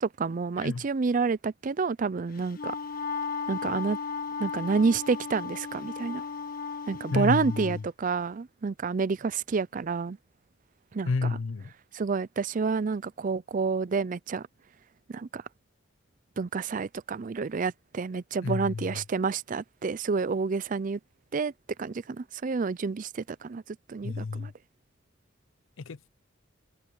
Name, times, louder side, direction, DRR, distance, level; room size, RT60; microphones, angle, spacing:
voice 1, 0.0-2.7 3.5-4.0 4.4-6.2 6.9-10.2 10.9-11.3 11.9-14.5 15.1-15.4 16.4-21.0 21.3-21.5 21.8-23.6 23.9-24.5, right 4 dB, 40° right, 0.4 m, -29 dB
Wind instrument woodwind instrument, 2.4-7.8, left 5 dB, 50° left, 1.3 m, -35 dB
voice 2, 7.1-7.9 11.0-11.7 18.4-19.0 24.0-24.5 25.8-26.1, left 4 dB, 90° left, 0.6 m, -30 dB
head